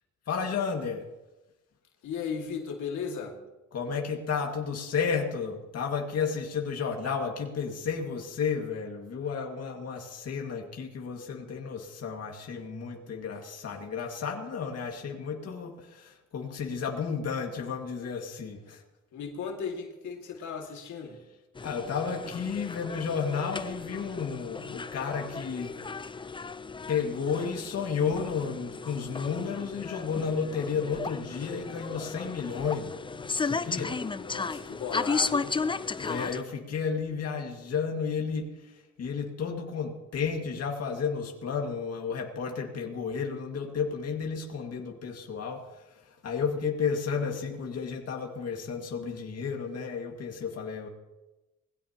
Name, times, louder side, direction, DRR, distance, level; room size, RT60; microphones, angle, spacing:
voice 1, 0.3-1.0 3.7-18.8 21.6-25.8 26.2-26.3 26.9-34.0 36.0-50.9, left 6 dB, 55° left, 1 dB, 2.0 m, -32 dB
voice 2, 2.0-3.4 19.1-21.2 34.0-35.6, left 6 dB, 75° left, 1 dB, 2.2 m, -36 dB
sound 1, 21.6-36.4, left 4 dB, 15° left, 0.5 m, -35 dB
20.5 x 16.0 x 2.9 m, 1.1 s
cardioid pair, 90°, 30 cm